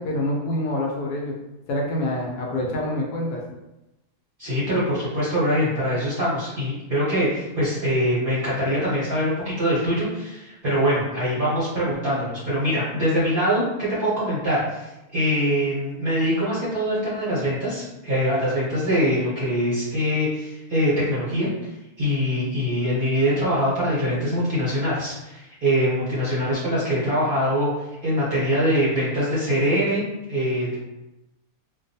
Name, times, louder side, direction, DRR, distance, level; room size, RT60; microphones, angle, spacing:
voice 1, 0.0-1.4 1.7-3.4, left 1 dB, 75° left, -2 dB, 1.1 m, -26 dB
voice 2, 4.4-21.5 22.0-30.0 30.3-30.8, equal, 45° right, -10 dB, 0.8 m, -23 dB
2.6 x 2.3 x 2.6 m, 0.96 s
omnidirectional pair, 1.7 m